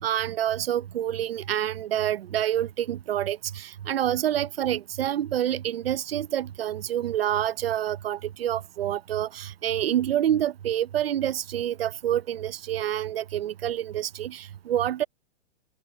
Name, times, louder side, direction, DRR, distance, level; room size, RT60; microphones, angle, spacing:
voice 1, 0.0-15.0, right 11 dB, 75° right, 0.8 m, -27 dB
hypercardioid pair, 175°, 30 cm